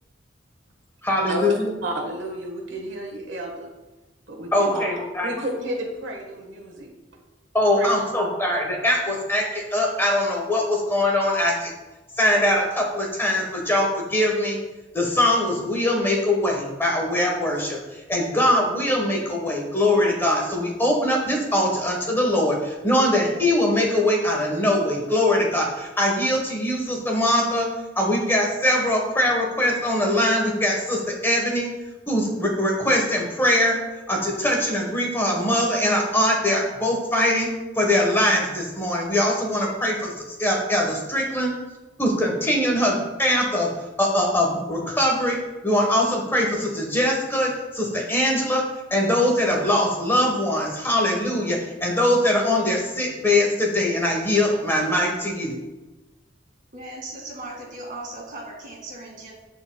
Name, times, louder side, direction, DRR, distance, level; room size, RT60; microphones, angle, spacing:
voice 1, 1.0-1.7 4.5-5.3 7.5-11.7 12.2-14.6 14.9-27.7 28.0-31.7 32.1-33.8 34.1-37.5 37.7-40.1 40.4-41.5 42.0-43.7 44.0-45.4 45.6-48.6 48.9-55.6, left 1 dB, 15° left, 0 dB, 1.2 m, -22 dB
voice 2, 1.8-3.7 4.3-5.0 5.2-6.9 7.7-7.9, right 1 dB, 80° right, 1 dB, 1.4 m, -31 dB
voice 3, 56.7-59.3, right 2 dB, 45° right, -1 dB, 2.1 m, -37 dB
13.0 x 4.6 x 2.3 m, 1.1 s
head